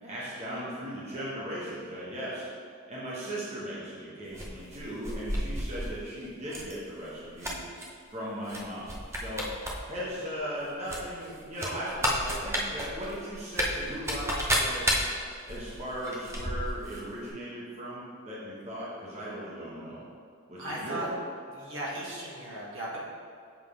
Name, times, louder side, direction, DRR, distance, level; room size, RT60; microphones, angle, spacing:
voice 1, 0.0-2.4 2.9-7.6 8.1-9.4 9.9-14.9 15.5-20.0 20.5-21.1, equal, 30° right, -7 dB, 1.2 m, -37 dB
sound 1, 4.3-5.9 6.5-6.7 7.1-7.9 8.5-8.6 8.9-9.7 10.0-10.1 10.9-17.0 17.3-17.4, equal, 15° right, 0.7 m, -31 dB
voice 2, 20.6-21.1 21.5-23.0, right 1 dB, 60° right, -6 dB, 1.6 m, -36 dB
7.4 x 3.8 x 5.0 m, 2.3 s
head